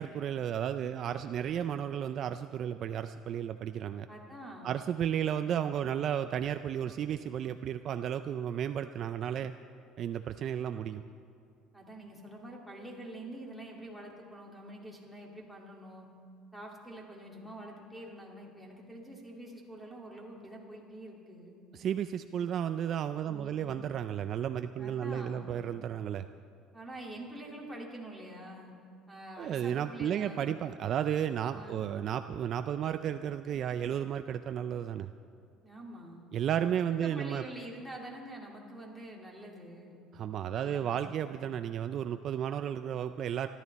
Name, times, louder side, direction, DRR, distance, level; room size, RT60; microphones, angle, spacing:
voice 1, 0.0-4.1 4.6-9.5 10.0-11.0 21.7-26.2 29.4-35.1 36.3-37.4 40.1-43.5, right 9 dB, 40° right, 10 dB, 0.4 m, -33 dB
voice 2, 4.1-4.8 11.7-16.1 16.5-21.5 23.2-23.7 24.8-25.5 26.7-28.7 29.1-30.4 31.5-31.9 35.6-36.3 36.7-40.0 40.5-41.2, right 1 dB, ahead, -2 dB, 2.3 m, -46 dB
27.5 x 12.0 x 4.1 m, 2.5 s
cardioid pair, 160°, 0 cm